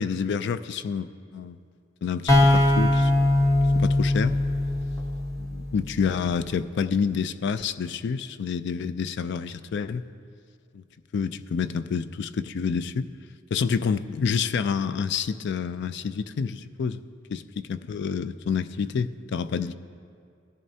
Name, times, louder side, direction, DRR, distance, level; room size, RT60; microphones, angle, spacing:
voice 1, 0.0-1.6 2.0-3.4 3.7-4.4 5.4-10.0 10.7-10.8 11.1-13.1 13.5-17.0 17.3-17.4 17.7-19.8, left 6 dB, 60° left, 13 dB, 0.3 m, -28 dB
sound 1, 2.3-5.9, left 1 dB, 15° left, 1.1 m, -21 dB
17.5 x 10.5 x 2.8 m, 2.4 s
head